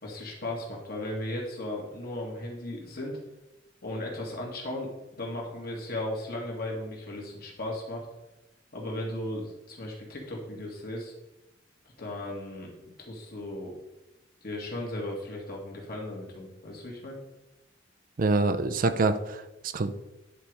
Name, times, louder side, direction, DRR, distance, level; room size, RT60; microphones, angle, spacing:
voice 1, 0.0-3.2 3.8-8.1 8.7-11.1 12.0-13.7 14.4-17.2, left 1 dB, 55° left, -1 dB, 2.0 m, -36 dB
voice 2, 18.2-19.9, right 3 dB, 50° right, 9 dB, 0.5 m, -26 dB
9.9 x 3.9 x 4.7 m, 0.97 s
head